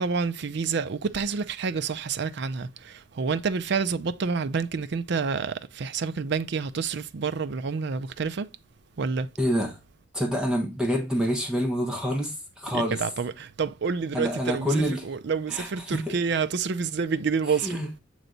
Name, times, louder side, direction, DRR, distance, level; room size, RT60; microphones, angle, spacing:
voice 1, 0.0-8.5 9.0-9.3 12.7-17.8, right 5 dB, 60° right, 0.5 m, -28 dB
voice 2, 9.4-9.8 10.1-13.0 14.1-15.1 15.5-16.2 17.5-17.9, equal, 5° right, 1.2 m, -27 dB
7.8 x 3.2 x 3.9 m
head